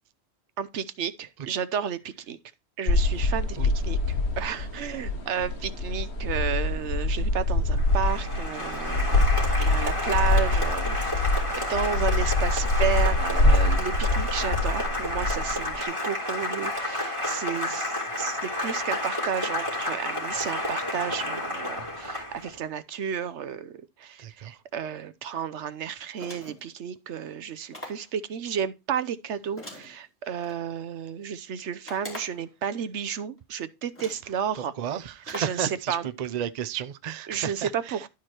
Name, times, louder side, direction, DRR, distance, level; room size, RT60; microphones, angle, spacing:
voice 1, 0.6-2.4 2.8-9.2 9.6-34.7 35.3-36.1 37.3-38.1, right 8 dB, 75° right, 1.0 m, -32 dB
sound 1, 2.9-15.8, left 2 dB, 65° left, 1.7 m, -25 dB
Applause, 7.8-22.6, left 1 dB, 25° right, 3.0 m, -31 dB
voice 2, 24.2-24.6 34.6-38.0, right 9 dB, 45° right, 0.6 m, -33 dB
sound 2, 26.1-26.7 27.7-28.1 29.6-30.6 31.8-32.5 33.4-33.5 33.9-34.3 35.2-35.6, left 1 dB, 10° left, 3.4 m, -42 dB
11.5 x 4.8 x 4.4 m
omnidirectional pair, 1.2 m